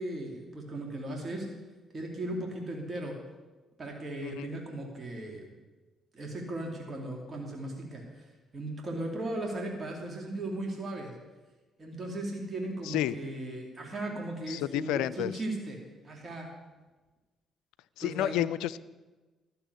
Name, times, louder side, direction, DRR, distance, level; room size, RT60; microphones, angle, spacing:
voice 1, 0.0-1.5 1.9-3.1 3.8-5.5 6.1-8.2 8.5-11.1 11.8-15.8 16.0-16.5 18.0-18.4, right 1 dB, 40° right, 0 dB, 2.7 m, -37 dB
voice 2, 4.2-4.6 12.8-13.2 14.5-15.3 18.0-18.8, left 13 dB, 75° left, 16 dB, 0.4 m, -31 dB
12.5 x 6.9 x 8.1 m, 1.2 s
hypercardioid pair, 45°, 0 cm